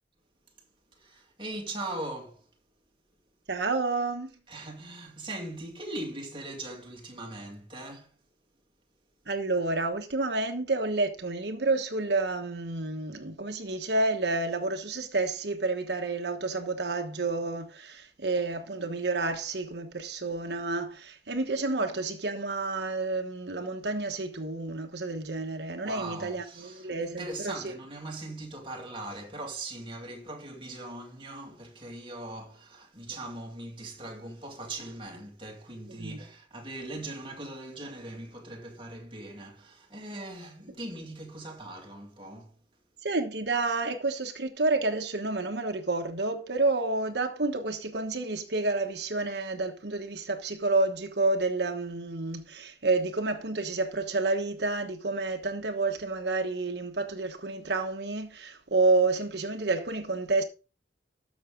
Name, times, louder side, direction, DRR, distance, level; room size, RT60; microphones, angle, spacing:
voice 1, 0.9-2.5 4.5-8.2 25.8-42.6, right 2 dB, 30° right, 2.3 m, -40 dB
voice 2, 3.5-4.3 9.3-27.6 36.0-36.2 43.0-60.4, right 3 dB, 80° right, 1.2 m, -29 dB
13.0 x 6.4 x 3.8 m
head